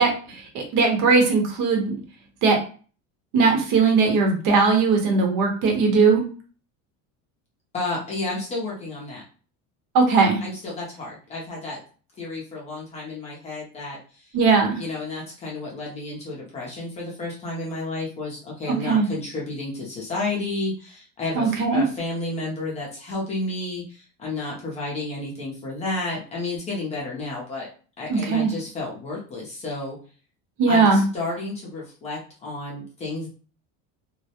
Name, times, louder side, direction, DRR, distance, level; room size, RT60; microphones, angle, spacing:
voice 1, 0.0-2.0 2.4-2.6 3.3-6.2 9.9-10.4 14.3-14.8 18.7-19.1 21.3-21.8 28.1-28.5 30.6-31.0, right 4 dB, 65° right, 3 dB, 0.8 m, -19 dB
voice 2, 7.7-9.2 10.4-11.8 12.2-14.4 14.8-27.7 28.0-30.0 30.7-33.3, left 2 dB, 20° left, -4 dB, 0.5 m, -31 dB
2.2 x 2.0 x 2.7 m, 0.38 s
cardioid pair, 180°, 34 cm